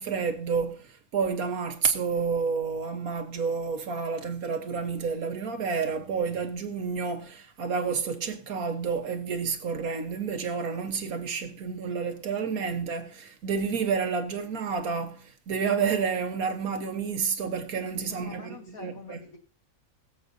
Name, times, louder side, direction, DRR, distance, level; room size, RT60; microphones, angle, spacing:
voice 1, 0.0-19.2, right 5 dB, 85° right, 1.7 m, -30 dB
voice 2, 17.9-19.4, left 4 dB, 80° left, 2.3 m, -46 dB
22.0 x 7.8 x 2.7 m
omnidirectional pair, 1.5 m